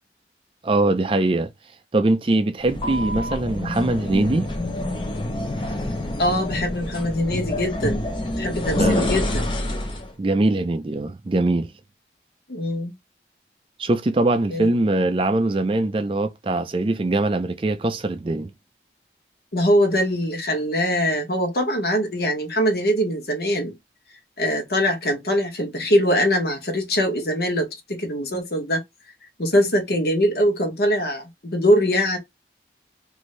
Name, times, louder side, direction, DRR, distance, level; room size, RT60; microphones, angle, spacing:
voice 1, 0.6-1.5 1.9-4.5 8.8-9.1 10.2-11.7 13.8-18.5, right 2 dB, 30° right, 0.4 m, -22 dB
sound 1, 2.6-10.1, left 1 dB, 25° left, 0.6 m, -26 dB
voice 2, 6.2-8.0 8.4-9.5 12.5-12.9 14.5-14.7 19.5-23.7 24.4-28.8 29.4-32.2, equal, 60° left, 1.0 m, -22 dB
2.6 x 2.6 x 3.1 m
head